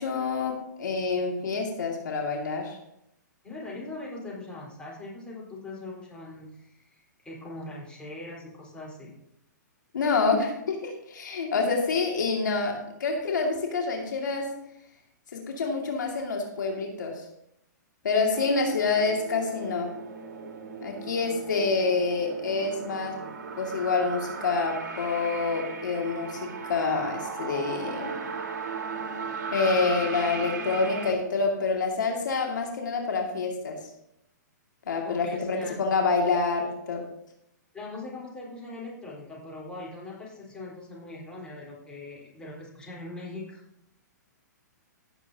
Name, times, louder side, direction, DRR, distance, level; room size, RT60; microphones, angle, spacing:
voice 1, 0.0-2.8 9.9-14.5 15.3-17.2 18.0-19.9 20.8-23.2 23.6-28.3 29.5-33.8 34.9-37.1, left 4 dB, 75° left, 1 dB, 2.1 m, -27 dB
voice 2, 3.4-9.1 35.0-35.8 37.7-43.6, left 2 dB, 10° left, -5 dB, 4.0 m, -41 dB
sound 1, 18.3-31.1, right 5 dB, 70° right, 1.9 m, -37 dB
16.0 x 7.4 x 2.8 m, 0.80 s
hypercardioid pair, 130°, 10 cm